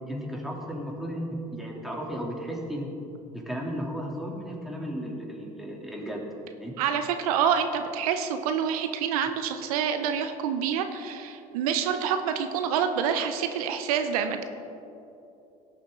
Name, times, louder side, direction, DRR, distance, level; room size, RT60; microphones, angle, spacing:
voice 1, 0.1-2.9 3.3-6.3 6.6-6.7, equal, ahead, -2 dB, 2.8 m, -34 dB
voice 2, 6.8-14.4, right 7 dB, 80° right, 8 dB, 0.6 m, -27 dB
17.0 x 7.1 x 3.7 m, 2.8 s
hypercardioid pair, 65°, 19 cm